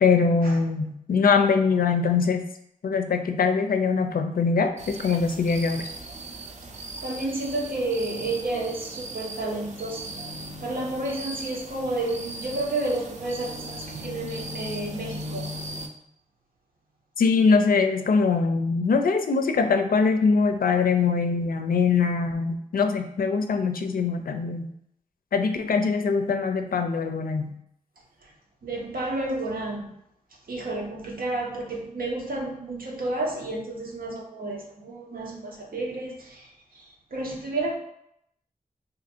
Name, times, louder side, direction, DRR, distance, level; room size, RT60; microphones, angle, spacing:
voice 1, 0.0-2.4 2.8-5.9 17.2-24.7 25.3-27.5, left 5 dB, 80° left, 7 dB, 0.4 m, -22 dB
sound 1, 4.8-15.9, right 1 dB, 50° right, 0.5 m, -38 dB
voice 2, 7.0-10.0 10.6-15.5 28.6-29.9 30.5-36.8 37.1-37.7, right 2 dB, 80° right, -1 dB, 0.8 m, -31 dB
2.6 x 2.5 x 4.2 m, 0.77 s
wide cardioid pair, 70°, 15 cm